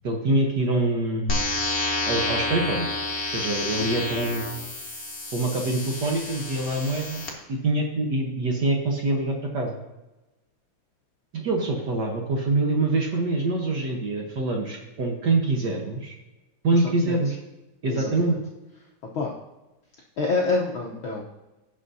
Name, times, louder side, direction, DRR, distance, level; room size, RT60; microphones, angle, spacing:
voice 1, 0.0-1.5 2.1-2.9 3.3-4.5 5.3-9.8 11.3-16.1 16.6-17.4 17.8-18.4, right 2 dB, 65° right, 0 dB, 1.0 m, -25 dB
sound 1, 1.3-7.3, left 2 dB, 60° left, 0.5 m, -29 dB
voice 2, 16.7-17.2 17.8-18.4 19.1-19.3 20.2-21.2, left 3 dB, 75° left, -1 dB, 1.1 m, -28 dB
16.5 x 6.2 x 2.7 m, 1.0 s
omnidirectional pair, 3.6 m